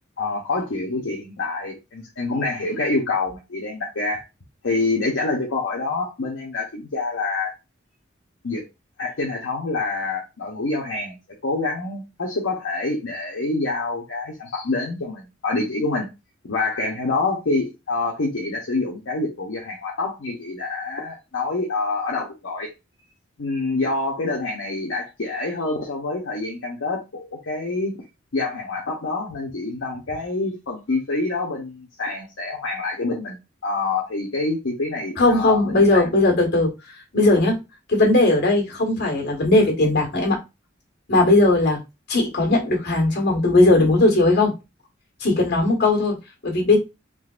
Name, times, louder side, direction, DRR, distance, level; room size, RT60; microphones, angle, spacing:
voice 1, 0.2-4.2 4.6-7.5 8.4-8.6 9.0-11.2 11.4-16.1 16.4-22.7 23.4-28.0 28.3-33.4 33.6-36.1, left 3 dB, 75° left, 0.8 m, -26 dB
voice 2, 35.2-36.7 37.1-37.5 37.9-40.4 41.1-41.8 42.1-44.5 45.2-46.2 46.4-46.8, left 2 dB, 60° left, 1.6 m, -18 dB
3.8 x 2.9 x 2.4 m
head